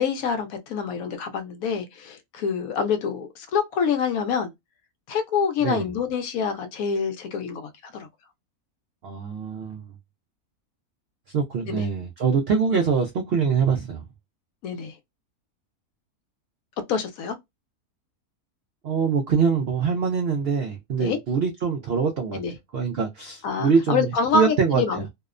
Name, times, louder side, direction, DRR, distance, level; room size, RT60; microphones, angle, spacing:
voice 1, 0.0-4.5 5.1-8.1 11.7-11.8 14.6-15.0 16.9-17.4 21.0-21.2 22.3-22.5 23.4-25.1, left 6 dB, 70° left, 1.0 m, -26 dB
voice 2, 9.0-9.8 11.3-14.0 18.8-22.4 22.7-24.8, right 5 dB, 75° right, 0.5 m, -24 dB
2.8 x 2.0 x 2.4 m
omnidirectional pair, 1.6 m